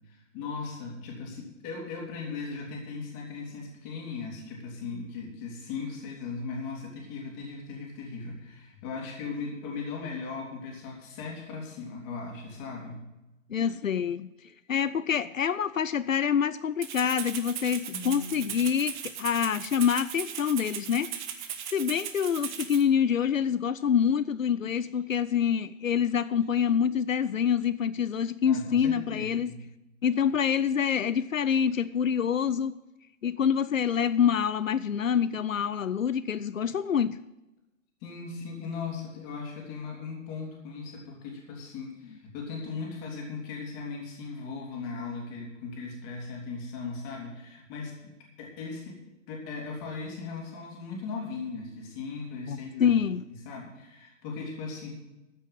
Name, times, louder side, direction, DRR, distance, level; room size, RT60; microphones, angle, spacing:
voice 1, 0.1-13.0 17.9-18.5 28.4-29.6 38.0-48.1 48.4-49.0 49.3-53.0 53.3-55.0, left 4 dB, 30° left, -1 dB, 3.5 m, -38 dB
voice 2, 13.5-14.3 14.7-29.5 30.0-32.7 33.2-37.2 52.5-53.2, left 8 dB, 85° left, 16 dB, 0.6 m, -26 dB
Rattle (instrument), 16.8-22.8, right 9 dB, 35° right, 1.3 m, -37 dB
14.0 x 6.3 x 8.1 m, 0.97 s
figure-of-eight pair, 125°, 38 cm